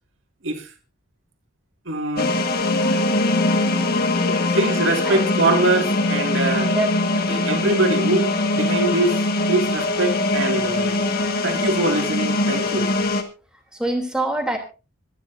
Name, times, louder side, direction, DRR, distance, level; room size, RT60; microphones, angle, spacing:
voice 1, 1.9-2.4 4.5-6.7 7.3-9.2 9.5-11.0 11.4-12.9, right 2 dB, 65° right, 2.3 m, -23 dB
sound 1, 2.2-13.2, left 2 dB, 45° left, 1.7 m, -22 dB
voice 2, 4.1-4.6 5.0-5.2 6.6-6.9 7.3-7.5 13.7-14.6, right 1 dB, 5° right, 3.0 m, -26 dB
25.5 x 10.5 x 2.7 m
head